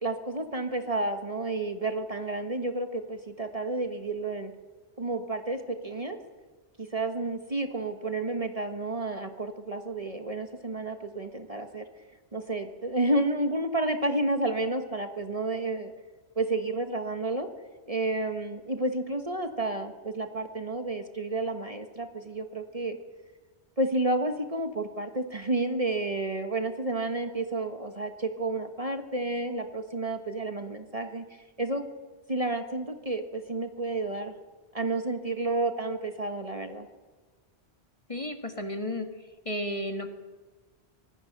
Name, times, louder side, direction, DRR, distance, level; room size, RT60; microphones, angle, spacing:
voice 1, 0.0-4.5 5.0-6.2 6.8-11.8 12.3-15.9 16.4-17.5 17.9-23.0 23.8-31.2 31.6-31.9 32.3-34.3 34.7-36.9, right 2 dB, 35° right, 7 dB, 1.4 m, -30 dB
voice 2, 38.1-39.1 39.4-40.1, left 1 dB, 30° left, 6 dB, 1.8 m, -32 dB
25.0 x 18.5 x 6.6 m, 1.4 s
omnidirectional pair, 1.1 m